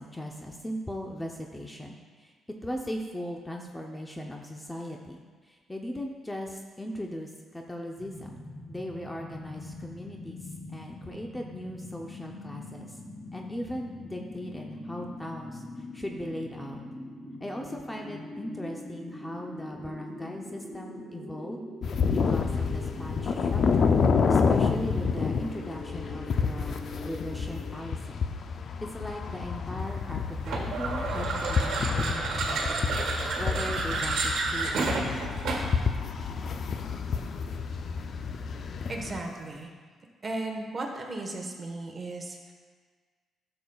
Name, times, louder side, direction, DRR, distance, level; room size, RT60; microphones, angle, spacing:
voice 1, 0.0-2.3 2.6-5.2 5.5-10.4 10.7-12.9 13.3-15.6 15.9-16.8 17.4-23.9 24.3-26.8 27.1-28.2 28.8-33.0 33.4-35.2, equal, 10° left, 1 dB, 0.7 m, -38 dB
sound 1, 8.0-27.7, left 1 dB, 35° left, 2.5 m, -43 dB
sound 2, 21.8-39.2, left 5 dB, 55° left, 0.4 m, -29 dB
sound 3, 30.4-35.8, right 3 dB, 75° right, 1.4 m, -30 dB
voice 2, 38.9-39.7 40.2-42.5, right 2 dB, 35° right, 2 dB, 1.3 m, -36 dB
12.5 x 6.9 x 2.4 m, 1.5 s
cardioid pair, 90°, 0 cm